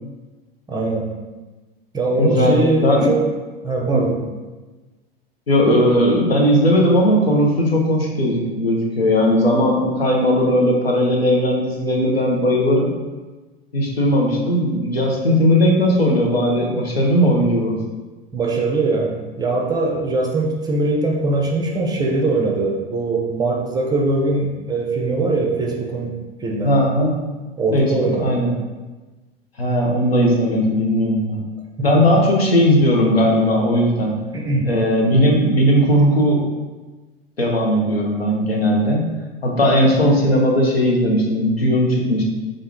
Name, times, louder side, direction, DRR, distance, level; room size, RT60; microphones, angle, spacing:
voice 1, 0.7-1.1 1.9-3.3 3.6-4.2 5.6-5.9 18.3-26.7 27.6-28.4 31.9-32.2 34.3-34.7, right 2 dB, 15° right, -1 dB, 0.5 m, -21 dB
voice 2, 2.2-2.5 2.8-3.1 3.9-4.0 5.5-12.9 13.7-17.8 26.6-27.2 27.7-27.9 28.2-28.5 29.6-31.4 31.8-34.1 34.6-36.5 37.4-39.1 39.4-42.2, equal, 85° left, -2 dB, 0.9 m, -17 dB
4.3 x 2.5 x 3.6 m, 1.2 s
figure-of-eight pair, 90°, 30 cm